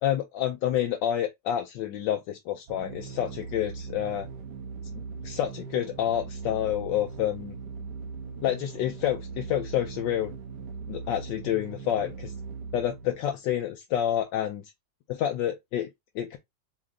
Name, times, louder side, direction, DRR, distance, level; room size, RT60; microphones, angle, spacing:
voice 1, 0.0-4.3 4.9-7.5 8.4-10.4 10.9-12.3 12.7-14.6 15.1-15.9 16.1-16.4, left 11 dB, 85° left, 1.3 m, -28 dB
sound 1, 2.7-13.4, right 5 dB, 70° right, 1.6 m, -40 dB
4.2 x 3.1 x 3.6 m
omnidirectional pair, 1.9 m